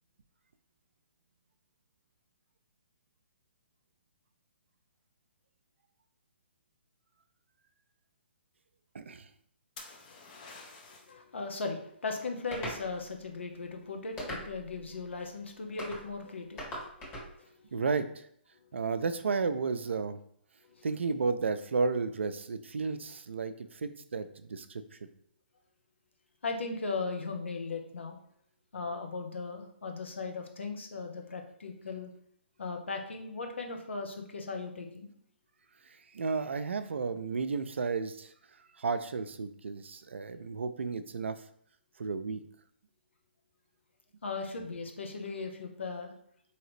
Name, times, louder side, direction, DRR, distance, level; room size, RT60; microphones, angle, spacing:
voice 1, 8.9-9.3 17.7-18.3 18.7-20.2 20.8-24.8 35.8-38.3 38.8-41.4 42.0-42.4, right 4 dB, 85° right, 10 dB, 0.4 m, -33 dB
sound 1, 9.8-11.2 14.9-15.3, left 3 dB, 45° left, 0.8 m, -49 dB
voice 2, 11.0-17.7 20.6-20.9 26.4-28.2 28.7-32.1 32.6-35.1 44.2-46.1, left 4 dB, 85° left, 3 dB, 0.7 m, -38 dB
sound 2, 12.5-12.8 14.2-14.7 15.8-16.0 16.6-17.3, equal, 25° left, 1.3 m, -39 dB
3.9 x 2.9 x 3.1 m, 0.65 s
hypercardioid pair, 140°, 6 cm